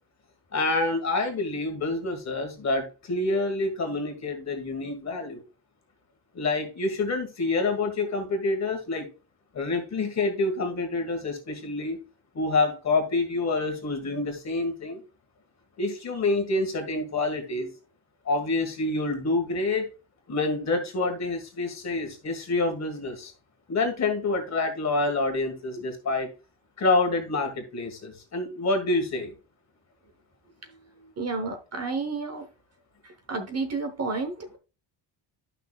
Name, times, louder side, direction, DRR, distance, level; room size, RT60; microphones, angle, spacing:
voice 1, 0.5-5.4 6.3-9.0 9.5-12.0 12.3-15.0 15.8-17.7 18.2-19.9 20.3-23.3 23.7-26.3 26.8-29.3, left 3 dB, 35° left, 1.8 m, -27 dB
voice 2, 31.0-32.5 33.0-34.6, right 3 dB, 35° right, 0.9 m, -31 dB
11.5 x 5.9 x 2.3 m
cardioid pair, 160°, 45 cm